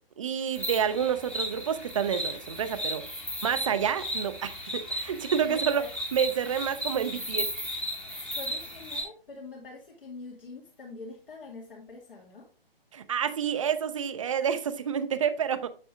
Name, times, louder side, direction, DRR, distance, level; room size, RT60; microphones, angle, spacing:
voice 1, 0.2-3.0 3.4-5.9 6.1-7.5 12.9-15.7, right 8 dB, 35° right, 0.5 m, -29 dB
sound 1, 0.5-9.0, equal, 5° left, 0.9 m, -35 dB
voice 2, 5.4-5.9 8.3-12.5, left 3 dB, 65° left, 2.1 m, -44 dB
7.3 x 6.8 x 2.4 m
figure-of-eight pair, 140°, 30 cm